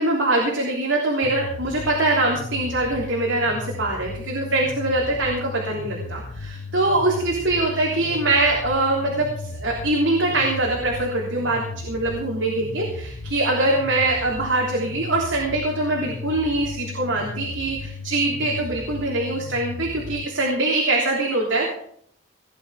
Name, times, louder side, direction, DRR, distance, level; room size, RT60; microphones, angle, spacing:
voice 1, 0.0-21.9, right 2 dB, 60° right, -3 dB, 3.4 m, -23 dB
sound 1, 1.2-20.2, left 4 dB, 90° left, 1.2 m, -35 dB
18.0 x 10.0 x 4.9 m, 0.64 s
head